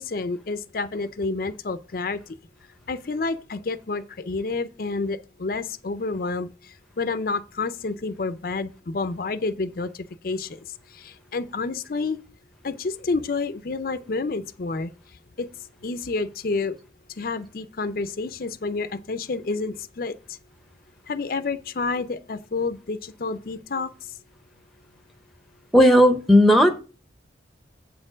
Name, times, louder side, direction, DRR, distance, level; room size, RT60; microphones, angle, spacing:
voice 1, 0.0-2.4 2.9-10.6 10.9-12.2 12.6-14.9 15.4-15.5 15.8-16.8 17.2-20.2 21.1-23.9, left 3 dB, 50° left, 0.5 m, -29 dB
voice 2, 25.7-26.8, equal, ahead, 0.7 m, -15 dB
8.3 x 4.4 x 6.1 m
head